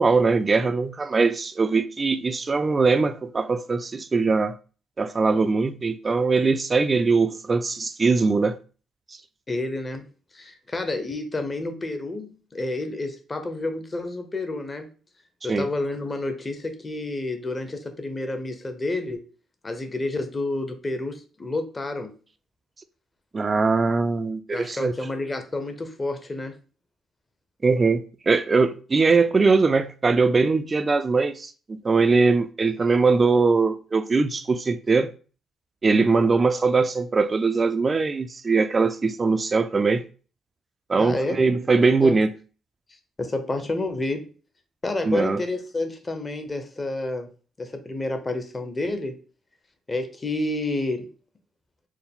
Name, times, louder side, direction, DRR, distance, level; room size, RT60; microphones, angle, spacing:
voice 1, 0.0-4.5 5.0-8.6 15.5-15.7 23.3-24.9 27.6-35.1 35.8-40.0 40.9-42.3 45.0-45.4, right 4 dB, 30° right, 0.4 m, -21 dB
voice 2, 9.5-14.9 15.4-19.2 19.6-22.2 24.5-26.6 41.0-41.4 42.0-42.1 43.2-44.3 44.8-47.3 47.6-49.2 49.9-51.1, left 2 dB, 25° left, 0.8 m, -29 dB
4.6 x 2.1 x 3.5 m
cardioid pair, 90°, 0 cm